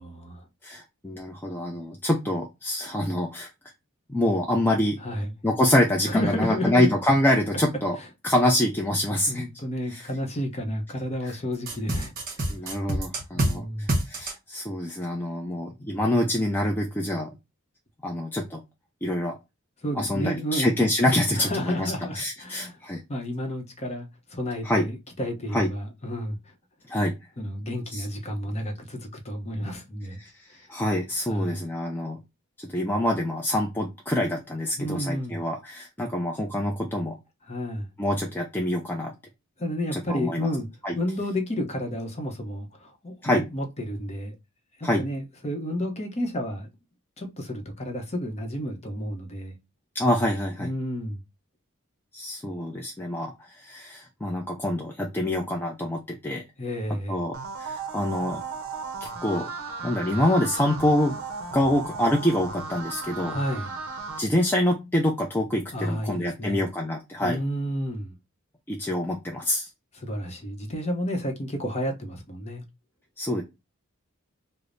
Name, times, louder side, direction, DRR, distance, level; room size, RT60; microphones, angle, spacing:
voice 1, 0.0-0.5 5.0-5.3 6.1-6.9 9.3-12.6 13.3-14.0 19.8-20.7 21.4-22.8 23.1-26.5 27.4-30.2 30.5-30.6 31.3-31.7 34.8-35.4 37.5-37.9 39.6-40.7 40.9-44.3 44.8-46.7 47.2-49.6 50.6-51.2 56.6-57.3 63.2-63.7 65.7-66.6 67.2-68.2 69.9-72.7, equal, 30° left, 0.7 m, -31 dB
voice 2, 0.6-3.5 4.1-5.0 5.4-8.0 8.2-9.5 9.9-10.1 11.2-11.3 12.5-17.3 18.0-18.6 19.0-19.4 20.0-23.0 24.6-24.9 25.5-25.7 26.9-27.1 27.9-28.0 30.2-32.2 32.6-37.2 38.0-39.1 39.9-40.5 40.8-40.9 43.2-43.4 44.8-45.0 49.9-50.7 52.1-56.4 57.1-58.4 59.0-59.5 59.8-61.2 61.5-63.4 64.2-67.4 68.7-69.7 73.2-73.4, left 1 dB, 10° left, 0.3 m, -26 dB
sound 1, 11.7-13.5 13.9-14.3, right 1 dB, 40° right, 1.1 m, -26 dB
sound 2, 57.3-64.2, right 4 dB, 65° right, 0.6 m, -36 dB
4.9 x 2.0 x 2.5 m
head